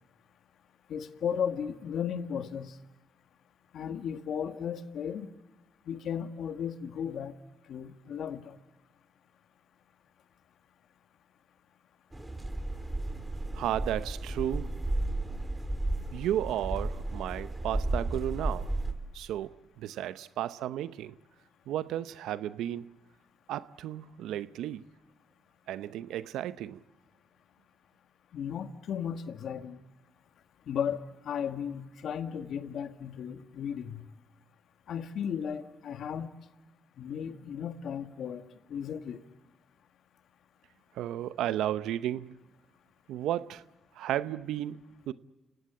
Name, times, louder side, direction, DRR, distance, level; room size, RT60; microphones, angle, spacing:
voice 1, 0.9-2.7 3.7-5.3 5.9-7.3 7.7-8.6 28.3-29.8 30.7-34.0 34.9-36.3 37.0-38.4 38.7-39.2, left 8 dB, 70° left, 1.6 m, -35 dB
sound 1, 12.1-18.9, right 2 dB, 20° right, 4.3 m, -33 dB
voice 2, 13.5-14.9 16.1-18.7 19.1-21.2 21.7-23.0 23.5-24.8 25.7-26.8 40.9-42.3 43.1-43.6 44.0-45.1, right 12 dB, 80° right, 0.7 m, -33 dB
30.0 x 17.5 x 8.7 m
supercardioid pair, 50°, 0 cm